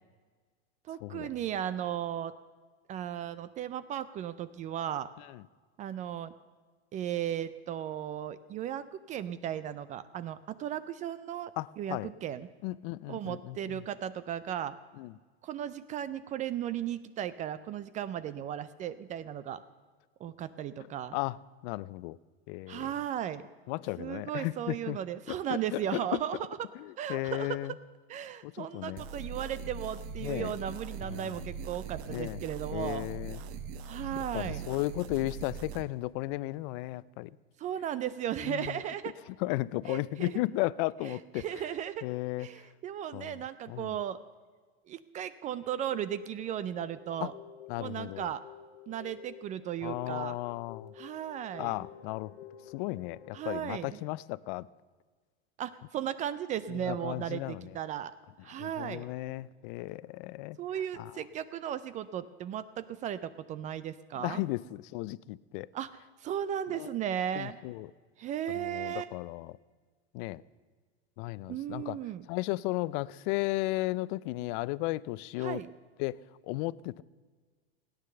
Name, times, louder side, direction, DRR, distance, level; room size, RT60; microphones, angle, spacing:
voice 1, 0.9-2.3 2.9-5.1 5.8-6.3 6.9-12.5 13.1-14.8 15.4-19.6 20.2-21.2 22.7-23.5 24.0-26.7 27.0-27.8 28.1-33.1 33.9-34.6 37.6-39.1 39.9-40.4 41.0-42.1 42.4-44.2 44.9-47.3 47.8-48.4 48.9-50.4 50.9-51.8 53.3-54.0 55.6-58.1 58.4-59.1 60.6-64.4 65.7-67.6 68.2-69.1 71.5-72.2 75.4-75.7, right 10 dB, 25° right, 0.3 m, -36 dB
voice 2, 11.6-12.1 12.6-13.8 15.0-15.1 21.1-21.4 21.6-22.2 22.5-22.9 23.7-25.0 25.3-26.0 27.1-27.7 28.4-29.0 30.2-30.5 31.0-31.3 32.1-32.4 32.7-33.4 34.3-37.3 38.4-38.8 39.4-41.4 42.0-42.5 43.1-43.4 43.7-43.9 47.2-47.3 47.7-48.3 49.8-50.9 51.6-52.3 52.7-54.7 56.7-57.7 58.6-60.6 61.0-61.1 64.2-65.7 66.7-66.9 67.3-67.9 68.5-69.5 70.1-70.4 71.2-72.0 72.3-75.6 76.0-76.2 76.5-77.0, left 19 dB, 50° left, 0.4 m, -35 dB
sound 1, 29.0-35.8, right 5 dB, 50° right, 1.0 m, -41 dB
sound 2, 45.7-53.4, left 9 dB, 80° left, 1.4 m, -51 dB
16.5 x 9.8 x 6.7 m
supercardioid pair, 130°, 33 cm